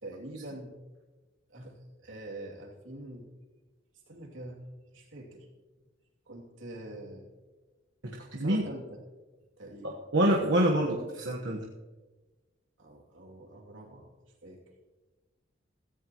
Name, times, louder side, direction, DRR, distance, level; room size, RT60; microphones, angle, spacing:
voice 1, 0.0-0.7 1.5-1.8 2.0-3.3 4.1-4.7 4.9-5.5 6.3-7.2 8.4-9.0 9.6-10.0 12.8-14.1 14.4-14.6, right 1 dB, 85° right, -1 dB, 2.7 m, -44 dB
voice 2, 8.0-8.6 9.8-11.7, right 1 dB, 70° right, -1 dB, 1.3 m, -27 dB
16.5 x 15.0 x 3.0 m, 1.2 s
head